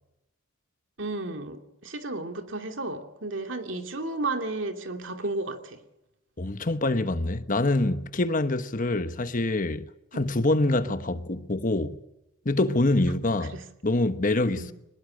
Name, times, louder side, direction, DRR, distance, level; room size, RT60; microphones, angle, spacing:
voice 1, 1.0-5.8 10.1-10.3 10.9-11.0 13.5-13.6 14.6-14.7, right 2 dB, 65° right, 2.7 m, -33 dB
voice 2, 6.4-9.9 10.1-12.0 12.4-14.7, left 2 dB, 40° left, 1.1 m, -25 dB
24.0 x 20.5 x 6.4 m
head